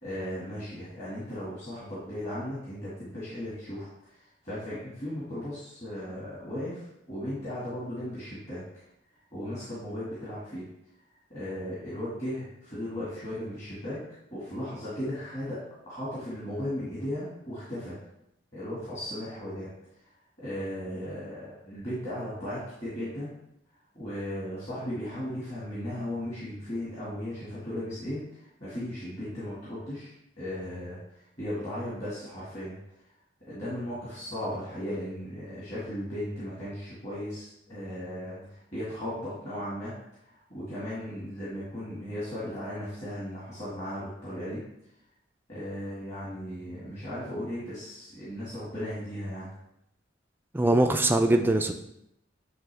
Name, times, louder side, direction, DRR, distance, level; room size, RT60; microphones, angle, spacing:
voice 1, 0.0-3.9 4.4-8.6 9.3-10.6 11.3-14.0 14.3-15.6 15.9-18.0 18.5-19.7 20.4-23.3 23.9-31.0 31.4-32.8 33.5-39.9 40.5-44.6 45.5-49.5, left 1 dB, 35° left, -9 dB, 1.9 m, -36 dB
voice 2, 50.5-51.7, right 1 dB, 10° right, 5 dB, 0.4 m, -22 dB
9.1 x 3.6 x 3.4 m, 0.81 s
head